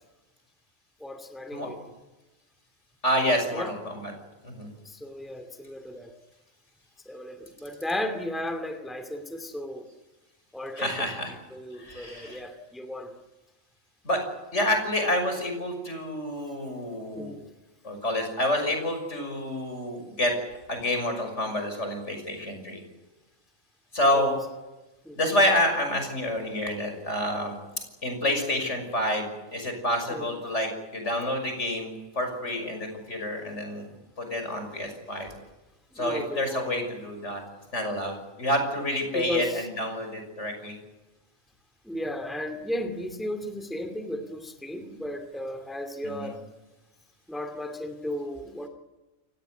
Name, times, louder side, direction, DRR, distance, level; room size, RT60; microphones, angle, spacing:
voice 1, 1.0-1.8 3.5-3.7 4.8-6.1 7.1-9.9 10.5-11.1 11.5-13.1 17.1-17.4 24.1-24.3 25.0-25.2 30.1-30.3 35.9-36.8 39.1-39.7 41.8-46.4 47.3-48.7, left 1 dB, ahead, 7 dB, 2.3 m, -35 dB
voice 2, 3.0-4.1 4.4-4.7 10.8-11.3 11.8-12.4 14.0-14.2 14.5-17.3 17.8-20.3 20.7-22.8 23.9-24.4 25.2-27.6 28.0-33.8 34.2-35.3 36.0-37.4 37.7-40.8 46.1-46.3, left 1 dB, 60° left, 5 dB, 6.4 m, -28 dB
29.0 x 17.0 x 9.3 m, 1.1 s
omnidirectional pair, 1.4 m